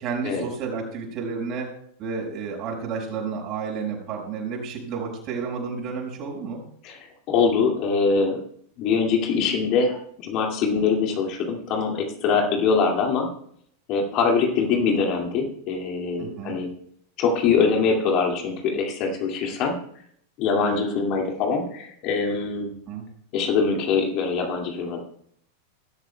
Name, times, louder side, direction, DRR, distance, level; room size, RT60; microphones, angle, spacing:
voice 1, 0.0-1.7 2.0-6.6 12.5-12.6 16.2-16.6 20.6-20.8 22.9-23.1, right 5 dB, 35° right, 0 dB, 5.2 m, -31 dB
voice 2, 7.3-8.4 8.8-13.3 13.9-16.7 17.2-19.7 20.4-22.8 23.3-25.0, left 5 dB, 40° left, 1 dB, 2.2 m, -23 dB
21.0 x 12.5 x 2.3 m, 0.67 s
figure-of-eight pair, 90°, 0 cm